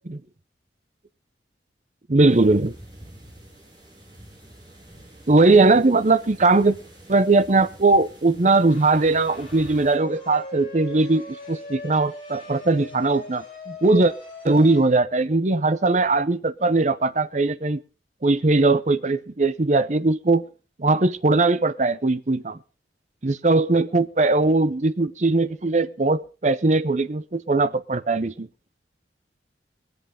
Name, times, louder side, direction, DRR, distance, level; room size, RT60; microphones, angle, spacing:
voice 1, 2.1-2.7 5.3-6.8 7.1-14.1 14.4-17.8 18.2-20.4 20.8-22.6 23.2-28.5, right 3 dB, 40° right, 0.7 m, -20 dB
sound 1, 2.3-10.0, right 1 dB, 25° right, 4.2 m, -47 dB
sound 2, 8.7-14.9, left 2 dB, 30° left, 7.8 m, -40 dB
21.5 x 8.0 x 5.1 m
head